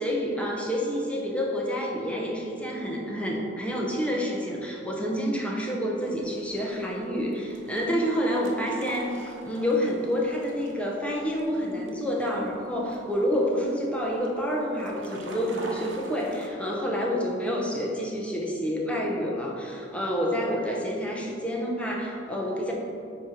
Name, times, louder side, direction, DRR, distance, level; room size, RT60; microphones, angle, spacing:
voice 1, 0.0-22.7, equal, 5° left, -2 dB, 0.8 m, -28 dB
sound 1, 6.0-16.5, right 1 dB, 75° right, 0.8 m, -46 dB
8.6 x 2.9 x 5.0 m, 2.5 s
head